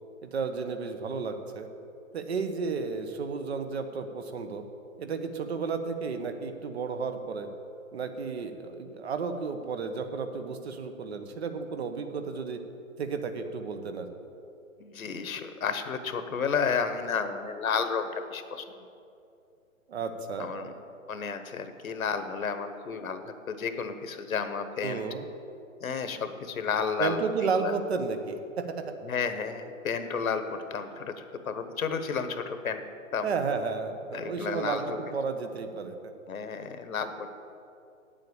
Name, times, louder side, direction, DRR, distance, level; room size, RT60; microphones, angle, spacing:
voice 1, 0.2-1.7 2.1-4.6 5.0-7.5 7.9-12.6 13.0-14.1 19.9-20.5 24.8-25.2 27.0-28.8 33.2-35.9, right 5 dB, 50° right, 7 dB, 1.1 m, -32 dB
voice 2, 14.8-18.6 20.4-20.7 21.1-25.0 25.8-27.2 27.6-27.7 29.0-30.4 30.7-32.8 33.1-33.3 34.1-35.0 36.3-37.3, left 6 dB, 75° left, 9 dB, 1.2 m, -32 dB
8.8 x 7.7 x 8.5 m, 2.6 s
hypercardioid pair, 150°, 42 cm